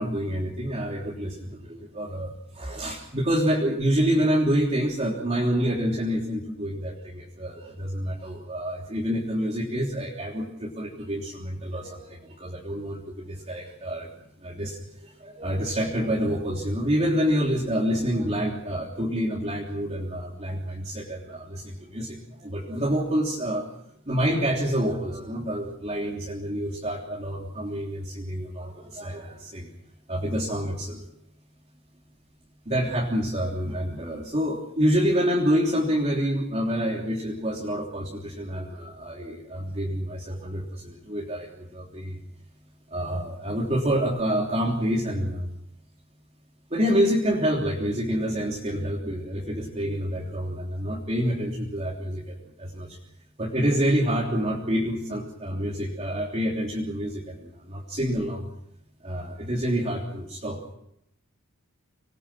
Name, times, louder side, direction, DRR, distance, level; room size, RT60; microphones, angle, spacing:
voice 1, 0.0-14.1 14.4-23.7 24.0-29.7 30.1-31.0 32.6-42.2 42.9-45.5 46.7-53.0 53.4-58.5 59.0-60.7, equal, 30° right, -3 dB, 3.4 m, -27 dB
26.0 x 20.5 x 6.2 m, 0.76 s
head